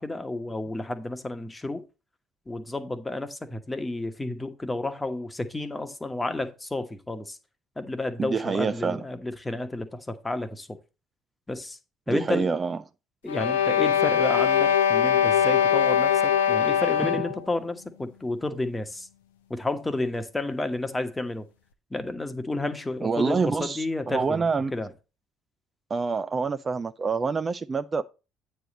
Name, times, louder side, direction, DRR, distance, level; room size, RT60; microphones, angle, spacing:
voice 1, 0.0-1.8 2.5-7.4 7.8-10.8 11.5-11.8 12.1-12.5 13.2-19.1 19.5-21.5 21.9-24.9, left 2 dB, 15° left, 1.2 m, -31 dB
voice 2, 8.2-9.0 12.1-12.8 23.0-24.7 25.9-28.0, right 5 dB, 35° right, 0.4 m, -26 dB
sound 1, 13.3-17.4, left 8 dB, 80° left, 0.6 m, -22 dB
8.9 x 3.4 x 6.3 m
hypercardioid pair, 55°, 0 cm